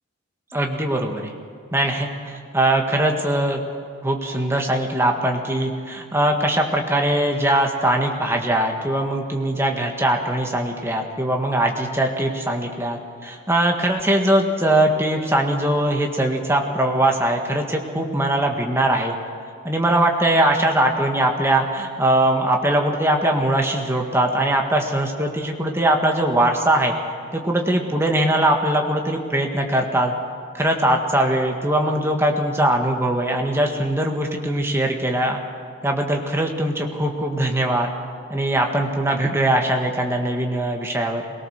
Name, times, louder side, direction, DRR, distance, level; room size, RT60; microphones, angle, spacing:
voice 1, 0.5-1.4 1.7-3.6 4.0-19.2 19.6-26.9 27.3-30.1 30.5-35.4 35.8-37.9 38.3-41.2, right 1 dB, 10° right, 2 dB, 1.7 m, -21 dB
23.0 x 18.0 x 6.6 m, 2.3 s
head